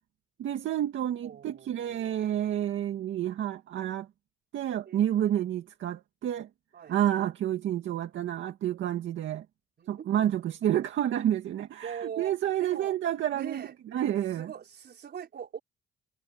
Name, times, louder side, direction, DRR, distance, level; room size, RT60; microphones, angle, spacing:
voice 1, 0.4-4.1 4.5-6.5 6.9-9.5 9.9-14.5, right 11 dB, 75° right, 2.0 m, -29 dB
voice 2, 1.2-2.4 4.9-5.1 6.7-7.0 9.8-10.1 11.8-13.0 13.3-13.7 14.4-15.6, right 8 dB, 55° right, 4.2 m, -42 dB
cardioid pair, 90°, 20 cm